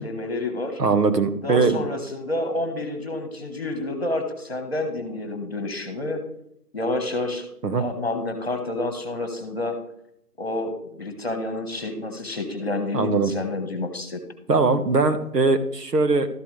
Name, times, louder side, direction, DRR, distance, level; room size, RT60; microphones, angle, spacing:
voice 1, 0.0-0.8 1.4-6.2 6.7-7.4 7.8-9.8 10.4-14.2, left 2 dB, 40° left, 6 dB, 1.4 m, -29 dB
voice 2, 0.8-1.9 7.6-7.8 12.9-13.3 14.5-16.3, right 4 dB, 75° right, 9 dB, 1.4 m, -21 dB
12.5 x 7.6 x 3.3 m, 0.74 s
figure-of-eight pair, 175°, 48 cm